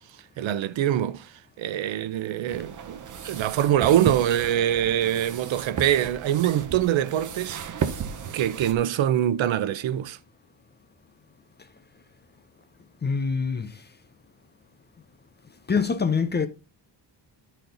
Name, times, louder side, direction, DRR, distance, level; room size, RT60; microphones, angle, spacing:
voice 1, 0.4-1.3 1.6-7.6 8.3-10.2, right 11 dB, 75° right, 0.7 m, -24 dB
sound 1, 2.5-8.7, right 7 dB, 40° right, 0.8 m, -34 dB
voice 2, 13.0-13.9 15.7-16.5, left 5 dB, 25° left, 0.5 m, -25 dB
11.5 x 4.3 x 3.8 m
wide cardioid pair, 180°, 46 cm